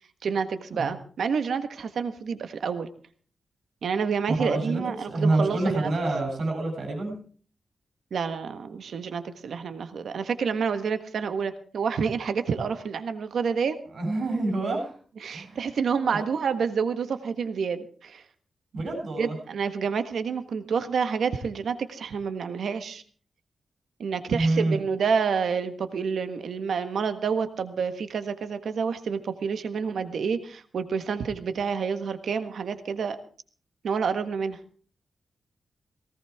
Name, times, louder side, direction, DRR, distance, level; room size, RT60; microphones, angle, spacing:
voice 1, 0.2-2.9 3.8-5.9 8.1-13.8 15.2-18.2 19.2-23.0 24.0-33.2 33.8-34.6, right 6 dB, 85° right, 9 dB, 1.5 m, -28 dB
voice 2, 4.4-4.8 5.1-7.2 13.9-14.9 15.3-15.6 18.7-19.4 24.3-24.8, right 2 dB, 65° right, 3 dB, 7.6 m, -27 dB
18.5 x 17.5 x 3.6 m, 0.43 s
wide cardioid pair, 165°, 0 cm